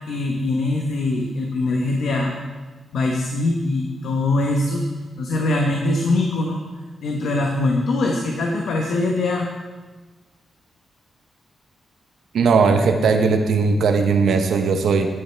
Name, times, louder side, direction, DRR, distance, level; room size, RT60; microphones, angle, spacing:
voice 1, 0.1-2.3 2.9-4.8 5.2-6.6 7.0-9.5, left 2 dB, 85° left, 1 dB, 1.0 m, -22 dB
voice 2, 12.3-15.1, right 5 dB, 80° right, 5 dB, 0.8 m, -18 dB
11.5 x 10.0 x 3.4 m, 1.3 s
wide cardioid pair, 145°, 0 cm